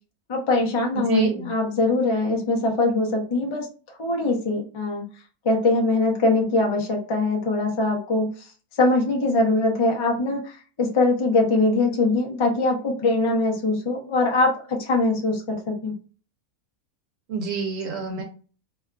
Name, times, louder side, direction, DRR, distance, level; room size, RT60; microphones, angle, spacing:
voice 1, 0.3-3.7 4.0-5.0 5.4-8.3 8.8-15.9, left 2 dB, 45° left, 0 dB, 0.4 m, -22 dB
voice 2, 0.9-1.5 17.3-18.2, right 3 dB, 70° right, 2 dB, 0.9 m, -26 dB
2.7 x 2.3 x 2.3 m, 0.38 s
omnidirectional pair, 1.5 m